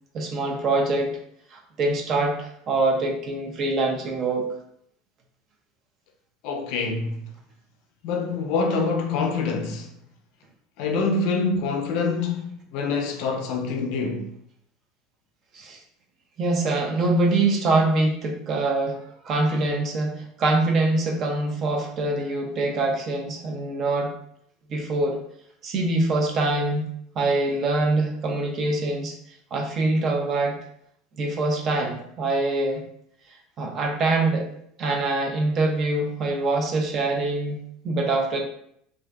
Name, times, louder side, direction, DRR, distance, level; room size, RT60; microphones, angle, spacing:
voice 1, 0.1-1.2 1.5-4.5 15.5-15.8 16.4-24.1 24.7-25.2 25.6-29.1 29.5-30.6 31.2-32.8 33.6-34.5 34.8-38.4, right 2 dB, 35° right, 0.4 m, -24 dB
voice 2, 6.4-7.3 8.0-9.9 10.8-14.3, left 4 dB, 60° left, 0.4 m, -26 dB
2.5 x 2.2 x 2.2 m
supercardioid pair, 150°, 0 cm